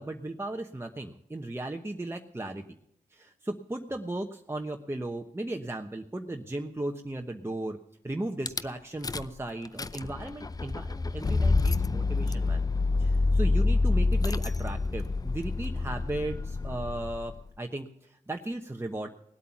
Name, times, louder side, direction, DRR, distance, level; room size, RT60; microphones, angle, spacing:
voice 1, 0.0-2.6 3.1-7.8 8.0-12.6 13.0-19.1, right 1 dB, 15° right, 3 dB, 1.0 m, -36 dB
Rattle / Car / Engine starting, 8.5-8.6 9.0-9.4 9.6-17.4, left 3 dB, 25° left, 0.5 m, -27 dB
18.5 x 8.3 x 5.9 m, 0.75 s
cardioid pair, 60°, 14 cm